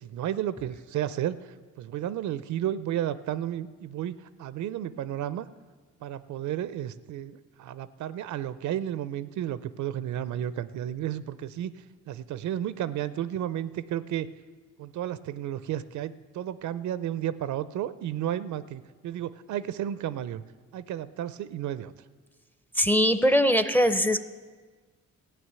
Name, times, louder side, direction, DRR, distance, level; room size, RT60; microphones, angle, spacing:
voice 1, 0.0-5.5 6.0-11.7 12.1-14.3 14.8-20.4 20.7-21.9, right 11 dB, 70° right, 15 dB, 0.5 m, -32 dB
voice 2, 22.7-24.2, equal, 5° left, 10 dB, 0.6 m, -21 dB
14.5 x 6.1 x 9.5 m, 1.4 s
cardioid pair, 90°, 30 cm